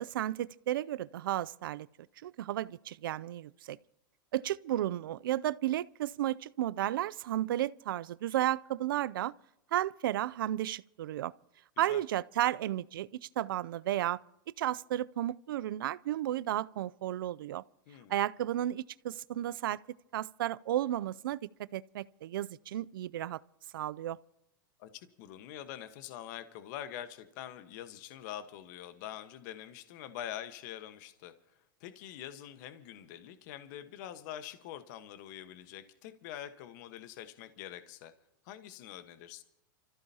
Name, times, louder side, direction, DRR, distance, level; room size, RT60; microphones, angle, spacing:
voice 1, 0.0-1.9 2.2-3.8 4.3-9.3 9.7-11.3 11.8-14.2 14.6-17.6 18.1-19.8 20.1-23.4 23.7-24.2, right 13 dB, 85° right, 0.4 m, -33 dB
voice 2, 24.8-31.3 31.8-38.1 38.4-39.4, left 11 dB, 60° left, 1.3 m, -45 dB
28.5 x 14.5 x 2.8 m
supercardioid pair, 130°, 11 cm